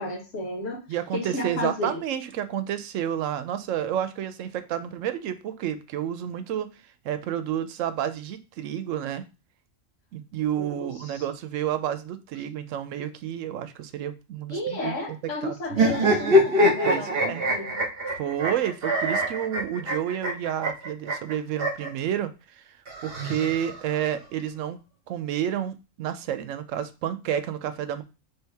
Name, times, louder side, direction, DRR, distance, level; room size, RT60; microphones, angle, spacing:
voice 1, 0.0-0.8 1.1-1.9 10.6-11.2 14.5-17.8, left 1 dB, 75° left, 1.6 m, -32 dB
voice 2, 0.9-6.7 7.0-9.2 10.1-14.9 15.2-15.6 16.8-17.5 18.2-22.8 23.0-24.8 25.1-28.0, right 10 dB, 85° right, 0.9 m, -30 dB
sound 1, 15.7-21.9 22.9-24.0, equal, 50° right, 1.3 m, -24 dB
4.5 x 3.4 x 3.4 m
omnidirectional pair, 1.3 m